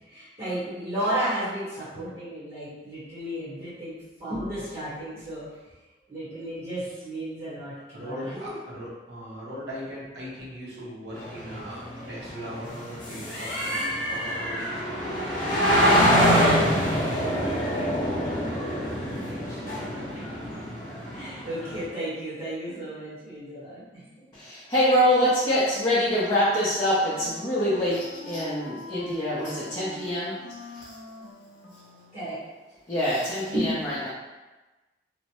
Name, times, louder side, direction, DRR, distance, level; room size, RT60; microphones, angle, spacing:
voice 1, 0.1-5.4 6.1-8.5 16.4-16.6 20.6-20.7 21.1-24.0 32.1-32.4 33.5-33.7, right 1 dB, 35° right, -14 dB, 1.2 m, -33 dB
voice 2, 7.9-15.0 15.5-20.5, equal, 70° right, -7 dB, 1.0 m, -40 dB
sound 1, 11.2-21.8, equal, 50° left, 0.8 m, -25 dB
voice 3, 24.3-30.3 30.7-30.8 32.9-34.1, equal, 25° left, -11 dB, 0.6 m, -25 dB
Wind instrument woodwind instrument, 26.2-32.3, left 3 dB, 90° left, 0.5 m, -44 dB
3.1 x 2.1 x 2.9 m, 1.1 s
head